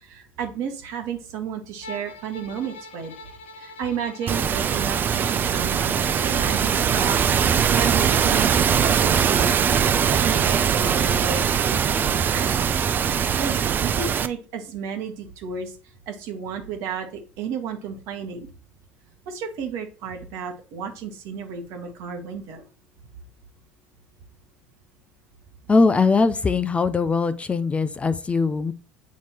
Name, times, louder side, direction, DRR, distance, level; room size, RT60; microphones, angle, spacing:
voice 1, 0.0-3.1 3.6-9.5 10.0-12.7 13.0-15.7 16.1-18.5 19.3-22.6, right 6 dB, 60° right, 4 dB, 1.3 m, -32 dB
Bowed string instrument, 1.8-8.0, left 2 dB, 75° left, 0.5 m, -42 dB
sound 1, 4.3-14.3, right 7 dB, 35° right, 0.4 m, -21 dB
voice 2, 25.7-28.7, left 4 dB, 20° left, 13 dB, 0.5 m, -21 dB
8.2 x 2.9 x 4.4 m, 0.36 s
figure-of-eight pair, 65°, 6 cm